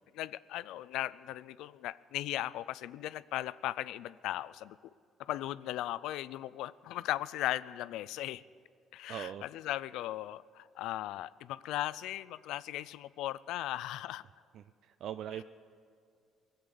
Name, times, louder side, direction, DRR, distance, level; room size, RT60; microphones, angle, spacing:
voice 1, 0.1-4.8 5.2-8.4 8.9-14.2, left 14 dB, 80° left, 18 dB, 0.3 m, -37 dB
voice 2, 9.1-9.4 14.5-15.4, right 10 dB, 70° right, 11 dB, 0.3 m, -41 dB
19.5 x 8.1 x 6.8 m, 2.2 s
supercardioid pair, 80°, 0 cm